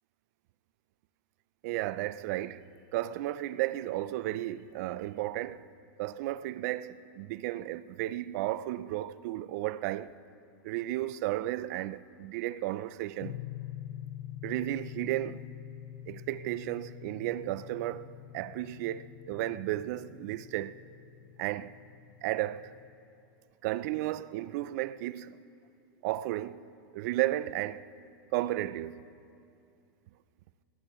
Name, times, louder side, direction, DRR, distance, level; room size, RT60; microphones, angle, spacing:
voice 1, 1.6-2.7 2.9-5.6 6.0-10.2 10.6-13.4 14.4-15.4 16.1-18.1 18.3-20.8 21.4-21.8 22.2-22.7 23.6-25.4 26.0-26.6 26.9-27.9 28.3-29.0, right 15 dB, 45° right, 0.4 m, -33 dB
sound 1, 13.2-22.9, left 12 dB, 40° left, 0.6 m, -46 dB
20.5 x 18.0 x 3.1 m
supercardioid pair, 150°, 12 cm